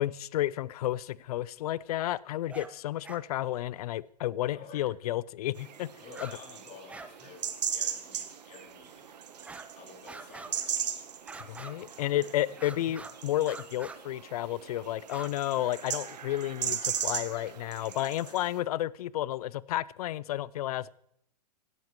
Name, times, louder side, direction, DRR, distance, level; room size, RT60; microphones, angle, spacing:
voice 1, 0.0-5.9 6.2-6.3 11.5-20.9, left 14 dB, 65° left, 0.4 m, -32 dB
sound 1, 2.5-2.7 3.0-3.2 4.9-5.0 6.1-6.4 6.6-7.1 7.4-7.6 8.2-8.3 9.4-9.7 10.1-10.7 11.3-12.0 12.5-13.2 13.4-14.0 15.0-15.3, right 3 dB, 5° right, 0.5 m, -45 dB
voice 2, 4.5-4.9 6.0-9.2 9.7-10.7 12.1-12.6 18.2-18.4, left 4 dB, 35° left, 3.5 m, -51 dB
sound 2, 5.6-18.6, right 8 dB, 75° right, 1.0 m, -38 dB
16.0 x 11.0 x 3.1 m
hypercardioid pair, 115°, 21 cm